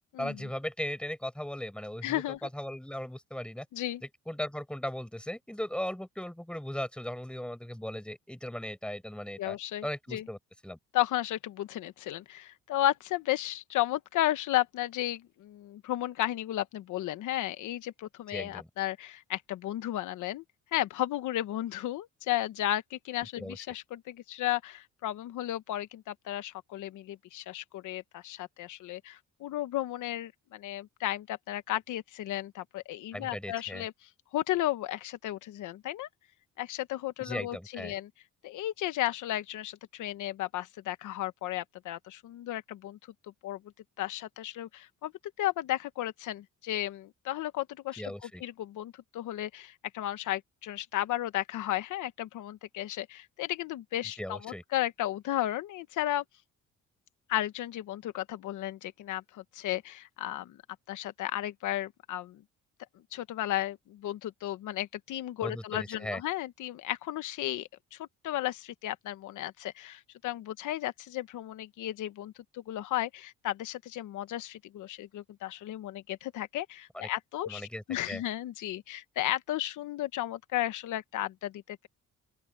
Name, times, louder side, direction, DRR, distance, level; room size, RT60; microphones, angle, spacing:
voice 1, 0.2-3.7 4.3-9.6 9.8-10.4 10.6-10.8 18.3-18.7 23.4-23.6 33.1-33.9 37.2-37.9 48.0-48.4 54.2-54.6 65.4-66.2 76.9-77.1 77.5-78.2, equal, 5° left, 5.5 m, -37 dB
voice 2, 2.0-2.4 3.7-4.0 9.4-10.2 10.9-20.4 20.7-36.1 36.6-38.1 38.4-43.0 43.4-43.6 44.0-45.1 45.4-56.2 57.3-60.6 60.9-62.4 63.1-81.9, left 14 dB, 85° left, 1.1 m, -34 dB
open air
cardioid pair, 90°, 30 cm